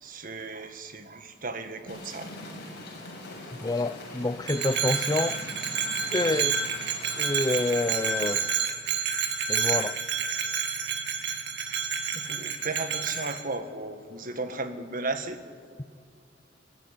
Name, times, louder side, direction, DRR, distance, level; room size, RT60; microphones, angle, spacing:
voice 1, 0.0-2.3 12.1-15.4, right 3 dB, 45° right, 1.7 m, -35 dB
sound 1, 1.8-8.4, left 2 dB, 60° left, 7.2 m, -42 dB
voice 2, 3.6-5.7 6.1-6.7 7.2-8.5 9.5-10.0, left 2 dB, 20° left, 0.5 m, -28 dB
Bell, 4.4-13.4, right 6 dB, 65° right, 2.1 m, -29 dB
22.5 x 13.0 x 10.0 m
head